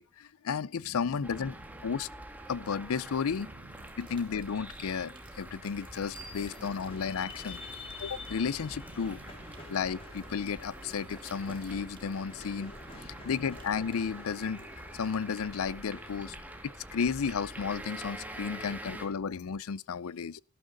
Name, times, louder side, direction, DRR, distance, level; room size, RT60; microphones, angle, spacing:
voice 1, 0.0-1.5 1.8-2.1 2.5-3.5 4.0-7.6 8.0-9.2 9.7-12.7 13.2-14.7 14.9-16.4 16.6-20.4, left 6 dB, 75° left, 0.5 m, -33 dB
voice 2, 0.8-1.9 3.3-4.0 5.9-7.1 8.9-9.6 12.8-13.3 16.2-16.5 18.5-18.9, right 2 dB, 65° right, 1.0 m, -54 dB
sound 1, 1.2-19.1, right 1 dB, 5° right, 1.8 m, -46 dB
sound 2, 3.1-15.5, right 6 dB, 25° right, 1.9 m, -64 dB
sound 3, 6.1-17.7, left 3 dB, 25° left, 2.5 m, -49 dB
12.5 x 11.5 x 4.0 m
head